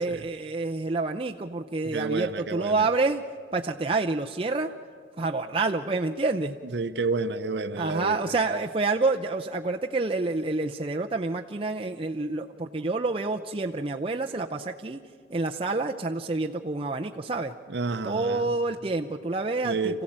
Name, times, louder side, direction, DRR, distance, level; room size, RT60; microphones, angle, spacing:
voice 1, 0.0-3.2 3.5-4.7 5.2-6.6 7.8-15.0 15.3-17.5 18.0-20.0, right 3 dB, 30° right, 3 dB, 0.6 m, -28 dB
voice 2, 1.8-2.8 6.7-8.2 17.7-18.5 19.6-20.0, right 3 dB, 70° right, 10 dB, 0.8 m, -30 dB
27.5 x 15.5 x 8.8 m, 2.4 s
head